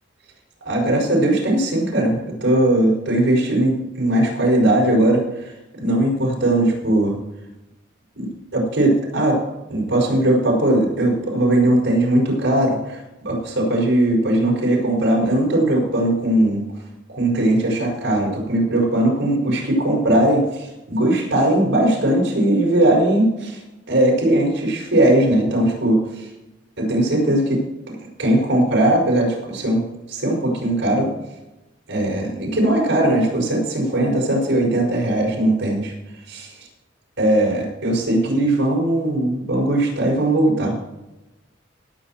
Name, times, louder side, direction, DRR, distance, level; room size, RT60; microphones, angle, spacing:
voice 1, 0.6-5.5 5.8-7.1 8.1-9.4 9.7-13.0 13.2-16.6 17.1-23.6 23.9-26.3 26.8-27.6 27.9-29.8 30.1-31.1 31.9-35.9 36.3-36.5 37.2-40.7, right 1 dB, 70° right, -2 dB, 5.8 m, -19 dB
18.5 x 8.5 x 4.5 m, 0.96 s
head